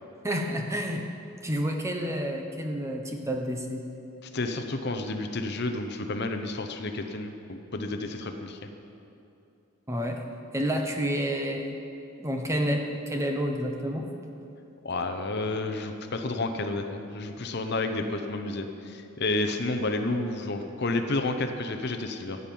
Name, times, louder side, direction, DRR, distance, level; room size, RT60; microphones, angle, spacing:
voice 1, 0.2-1.1 1.4-3.8 9.9-10.2 10.5-11.8 12.2-14.1, equal, 15° right, 2 dB, 0.8 m, -29 dB
voice 2, 4.2-8.6 14.8-22.4, left 2 dB, 50° left, 6 dB, 0.8 m, -30 dB
14.5 x 5.4 x 9.2 m, 2.8 s
head